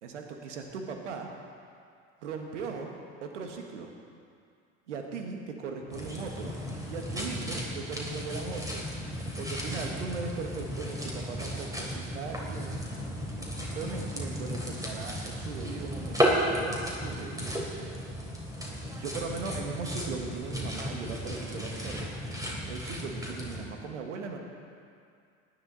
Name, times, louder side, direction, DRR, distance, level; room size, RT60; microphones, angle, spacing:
voice 1, 0.0-1.3 2.2-2.9 3.2-3.9 4.9-6.6 6.8-8.8 9.4-12.8 13.7-17.9 18.9-22.1 22.7-24.4, right 4 dB, 80° right, 3 dB, 1.7 m, -38 dB
sound 1, 5.9-23.6, equal, 10° right, 3.4 m, -34 dB
19.0 x 11.0 x 4.1 m, 2.3 s
hypercardioid pair, 65°, 35 cm